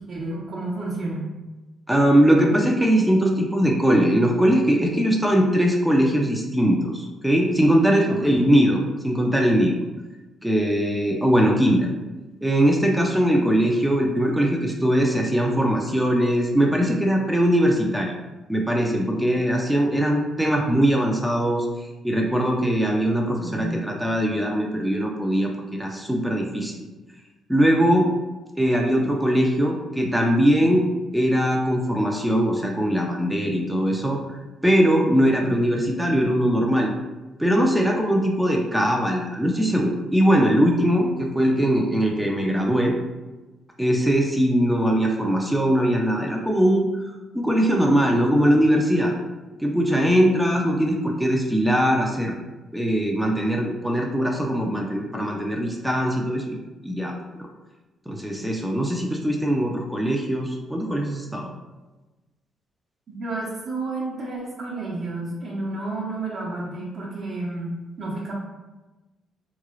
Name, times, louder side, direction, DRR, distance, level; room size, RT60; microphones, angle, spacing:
voice 1, 0.1-1.3 8.1-8.5 23.3-23.8 63.1-68.3, right 2 dB, 50° right, -6 dB, 0.8 m, -31 dB
voice 2, 1.9-9.8 10.4-11.9 12.4-18.1 18.5-21.7 22.0-26.7 27.5-28.1 28.6-30.9 31.1-36.9 37.4-42.9 43.8-46.9 47.3-49.1 49.6-52.3 52.7-56.6 56.8-57.1 58.1-61.5, equal, 5° right, 0 dB, 0.5 m, -21 dB
3.6 x 3.1 x 2.4 m, 1.1 s
cardioid pair, 90°, 0 cm